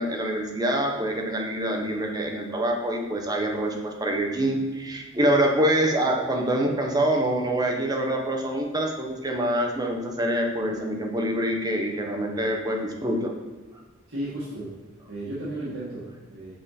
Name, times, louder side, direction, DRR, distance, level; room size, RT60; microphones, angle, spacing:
voice 1, 0.0-13.3, right 1 dB, 20° right, 1 dB, 0.9 m, -25 dB
voice 2, 14.1-14.7 15.1-16.5, right 1 dB, 75° right, -8 dB, 1.5 m, -34 dB
7.7 x 3.7 x 4.2 m, 1.3 s
head